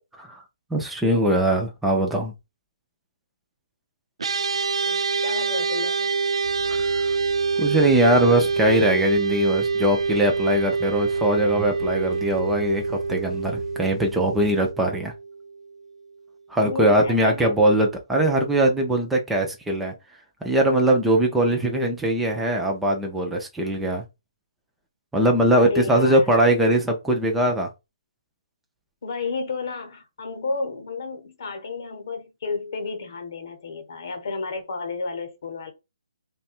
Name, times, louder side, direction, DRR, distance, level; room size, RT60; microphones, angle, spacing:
voice 1, 0.7-2.3 6.7-7.0 7.6-15.1 16.5-19.9 20.4-24.0 25.1-27.7, right 1 dB, ahead, 0.3 m, -21 dB
sound 1, 4.2-15.7, right 4 dB, 90° right, 0.3 m, -26 dB
voice 2, 4.8-6.1 16.6-17.5 25.6-26.3 29.0-35.7, left 4 dB, 40° left, 0.8 m, -31 dB
sound 2, 6.4-14.7, left 4 dB, 70° left, 0.7 m, -41 dB
3.2 x 2.2 x 4.2 m
hypercardioid pair, 180°, 3 cm